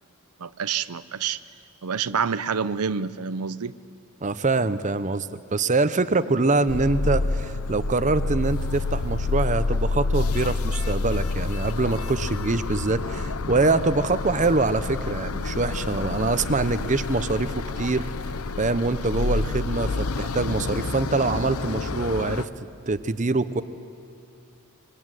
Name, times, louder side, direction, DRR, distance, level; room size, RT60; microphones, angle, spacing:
voice 1, 0.4-1.4 1.8-3.7, right 6 dB, 90° right, 14 dB, 0.7 m, -27 dB
voice 2, 4.2-18.0 18.6-22.5 22.9-23.6, right 3 dB, 35° right, 12 dB, 0.8 m, -24 dB
sound 1, 6.7-22.5, left 3 dB, 85° left, 0.9 m, -28 dB
25.0 x 24.0 x 9.2 m, 2.4 s
head